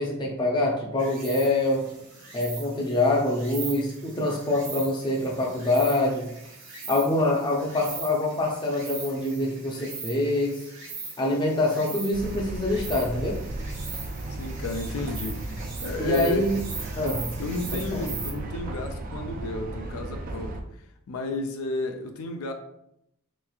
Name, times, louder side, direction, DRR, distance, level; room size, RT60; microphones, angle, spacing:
voice 1, 0.0-1.9 2.3-6.3 6.9-10.6 11.2-13.4 16.0-16.6 17.0-17.3 17.9-18.1, left 2 dB, 20° left, -1 dB, 0.5 m, -25 dB
Insect, 1.0-18.3, right 4 dB, 60° right, 0.9 m, -40 dB
sound 1, 12.1-20.6, right 2 dB, 40° right, 0.3 m, -35 dB
voice 2, 14.4-15.4 15.8-16.4 17.4-20.6 21.1-22.5, left 3 dB, 90° left, 5 dB, 0.4 m, -32 dB
3.4 x 3.0 x 2.4 m, 0.79 s
head